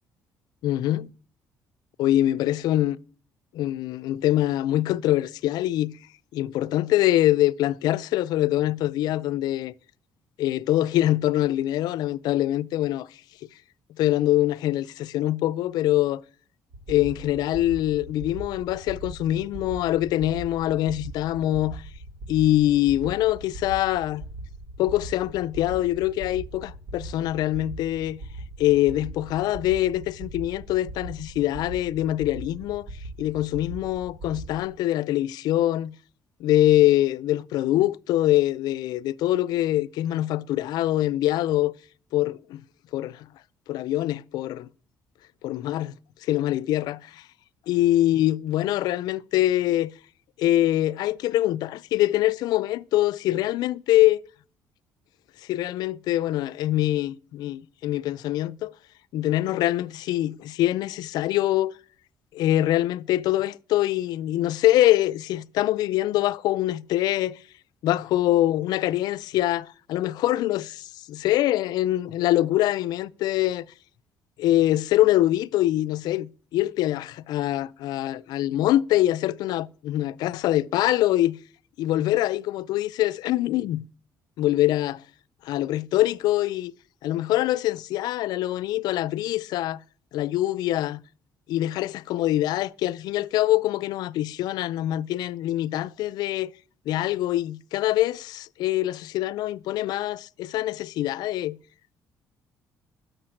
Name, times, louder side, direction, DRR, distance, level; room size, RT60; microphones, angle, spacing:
voice 1, 0.6-1.1 2.0-3.0 3.5-6.0 6.3-9.7 10.4-13.1 14.0-16.2 16.9-21.8 22.3-24.2 24.8-28.2 28.6-32.9 33.2-35.9 36.4-41.7 42.1-42.6 42.9-43.3 43.7-44.7 45.4-45.9 46.3-47.2 47.7-49.9 50.4-54.2 55.5-58.7 59.1-61.7 62.3-67.4 67.8-73.6 74.4-81.4 81.8-83.8 84.4-85.0 85.4-86.7 87.0-89.8 90.1-91.0 91.5-96.5 96.9-101.6, left 14 dB, 80° left, 0.5 m, -24 dB
sound 1, 16.7-34.6, right 2 dB, 80° right, 2.8 m, -40 dB
10.5 x 6.6 x 7.7 m
cardioid pair, 140°, 7 cm